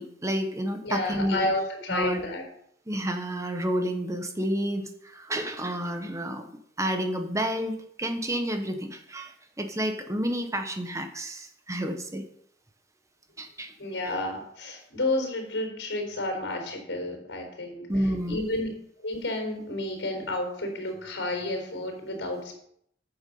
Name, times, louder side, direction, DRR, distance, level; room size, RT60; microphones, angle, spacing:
voice 1, 0.0-1.4 1.9-2.2 2.9-6.5 6.8-12.2 13.4-13.7 17.9-18.5, right 1 dB, 15° right, 6 dB, 1.0 m, -30 dB
voice 2, 0.8-2.4 13.8-17.9 18.3-18.7 19.0-22.6, left 2 dB, 85° left, 2 dB, 4.0 m, -31 dB
9.2 x 7.0 x 5.4 m, 0.69 s
head